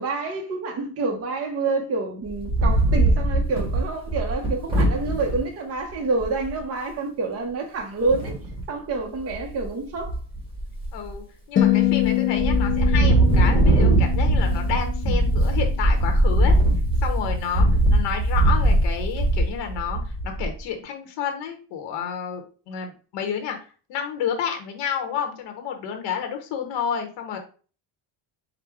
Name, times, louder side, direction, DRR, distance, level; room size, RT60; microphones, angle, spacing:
voice 1, 0.0-8.3 8.7-10.2, right 3 dB, 30° right, 0.8 m, -27 dB
Wind, 2.3-5.4 5.9-6.0 6.2-6.6 8.0-8.6 9.1-9.6 10.0-11.1 11.6-12.1 12.4-20.6, right 1 dB, 10° right, 1.3 m, -21 dB
voice 2, 10.9-16.6 17.0-23.6 23.9-27.4, left 8 dB, 60° left, 0.9 m, -30 dB
sound 1, 11.6-15.9, left 12 dB, 25° left, 0.4 m, -25 dB
5.0 x 2.1 x 4.7 m
cardioid pair, 170°, 47 cm